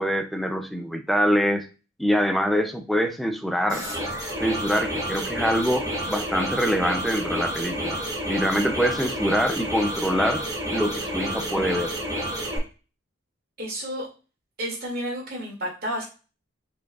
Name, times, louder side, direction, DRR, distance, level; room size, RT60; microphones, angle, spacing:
voice 1, 0.0-1.7 2.0-3.8 4.4-8.0 8.3-10.4 10.7-11.9, equal, ahead, 7 dB, 0.4 m, -24 dB
sound 1, 3.7-12.6, right 1 dB, 20° right, 1.5 m, -30 dB
voice 2, 13.6-14.1 14.6-16.0, equal, 50° right, -2 dB, 2.3 m, -31 dB
4.9 x 4.5 x 2.3 m, 0.33 s
head